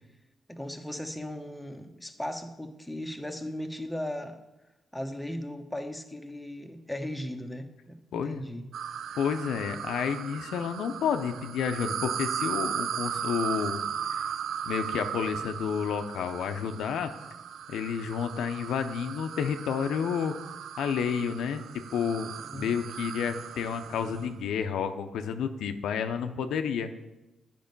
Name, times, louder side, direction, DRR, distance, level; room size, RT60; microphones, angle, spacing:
voice 1, 0.5-4.4 4.9-8.7 22.4-22.8, left 1 dB, 5° left, 4 dB, 0.9 m, -37 dB
voice 2, 8.1-8.4 9.1-13.8 14.1-14.3 14.7-17.1 17.7-20.4 20.8-21.6 21.9-26.9, left 7 dB, 85° left, 8 dB, 0.5 m, -30 dB
sound 1, 8.7-24.4, right 8 dB, 75° right, 0.3 m, -37 dB
8.9 x 5.3 x 5.3 m, 1.0 s
cardioid pair, 75°, 0 cm